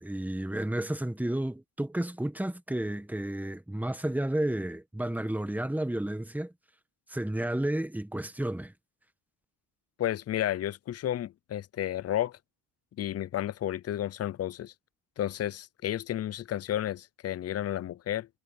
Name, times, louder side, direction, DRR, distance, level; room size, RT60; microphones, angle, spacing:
voice 1, 0.0-6.5 7.1-8.7, right 1 dB, 5° right, 1.3 m, -31 dB
voice 2, 10.0-12.4 13.0-14.7 15.2-18.3, left 12 dB, 35° left, 0.5 m, -32 dB
cardioid pair, 120°, 44 cm